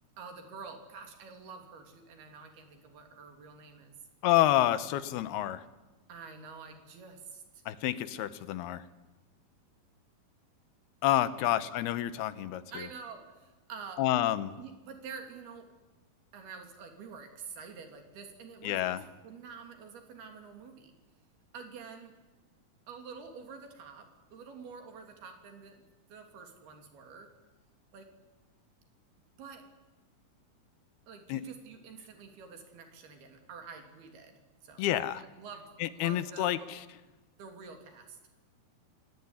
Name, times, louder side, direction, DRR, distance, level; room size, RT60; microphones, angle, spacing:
voice 1, 0.2-3.9 6.1-7.6 11.4-11.6 12.7-14.1 14.6-15.7 16.3-20.9 21.5-22.1 22.9-27.3 27.9-28.1 29.4-29.6 31.1-34.9 35.1-36.7 37.4-38.2, right 5 dB, 80° right, 5 dB, 5.0 m, -48 dB
voice 2, 4.2-5.6 7.7-8.8 11.0-12.6 14.0-14.5 18.6-19.0 31.3-31.4 34.8-35.2 35.8-36.8, left 13 dB, 90° left, 14 dB, 3.1 m, -28 dB
29.0 x 17.5 x 9.9 m, 1.2 s
omnidirectional pair, 4.4 m